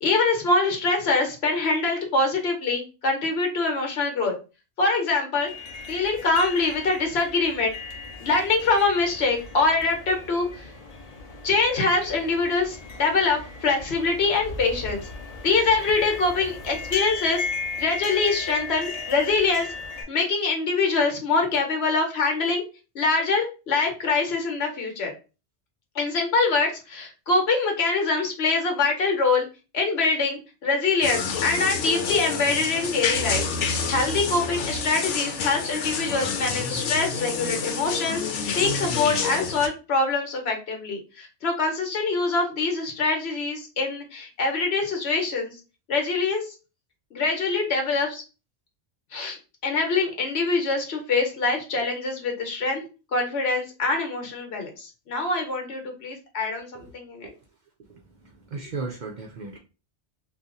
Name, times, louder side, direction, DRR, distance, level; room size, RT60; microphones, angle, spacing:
voice 1, 0.0-4.3 4.8-5.5 5.8-7.7 8.2-10.7 11.4-15.0 15.4-17.5 17.8-19.7 20.1-22.6 22.9-25.1 25.9-29.4 29.7-33.4 33.9-38.2 38.5-45.6 45.9-46.5 47.1-48.2 49.1-52.8 53.1-57.3, left 3 dB, 65° left, 1.1 m, -24 dB
sound 1, 5.4-20.0, left 4 dB, 45° left, 0.6 m, -36 dB
sound 2, 31.0-39.7, left 5 dB, 90° left, 0.9 m, -28 dB
voice 2, 57.9-59.6, right 4 dB, 55° right, 0.6 m, -36 dB
2.7 x 2.3 x 3.7 m
omnidirectional pair, 1.2 m